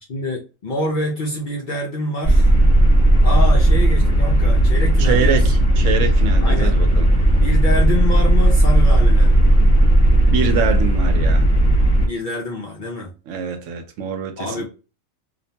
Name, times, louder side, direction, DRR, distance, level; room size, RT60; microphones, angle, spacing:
voice 1, 0.1-2.5 3.2-5.6 6.4-6.8 7.4-9.5 12.1-13.1 14.4-14.6, left 1 dB, 55° left, 0.5 m, -26 dB
sound 1, 2.2-12.1, right 1 dB, 40° left, 1.1 m, -15 dB
voice 2, 5.0-7.1 10.3-11.5 13.3-14.6, right 6 dB, 75° right, 0.9 m, -24 dB
2.5 x 2.1 x 2.7 m
omnidirectional pair, 1.3 m